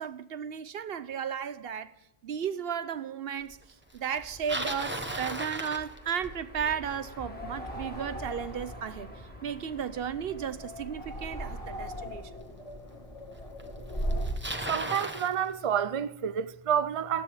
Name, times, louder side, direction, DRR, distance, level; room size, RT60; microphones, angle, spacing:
voice 1, 0.0-1.9 2.2-3.6 3.9-9.1 9.4-12.3, right 8 dB, 70° right, 0.9 m, -34 dB
sound 1, 3.4-12.7, equal, 10° left, 1.6 m, -49 dB
Bicycle, 4.1-6.5 11.5-11.6 12.5-12.6 13.6-13.7 13.9-15.3, right 1 dB, 10° right, 0.9 m, -35 dB
sound 2, 7.3-14.6, right 1 dB, 35° left, 1.8 m, -38 dB
voice 2, 14.7-17.2, right 8 dB, 45° right, 0.5 m, -29 dB
16.0 x 12.0 x 3.5 m
omnidirectional pair, 1.0 m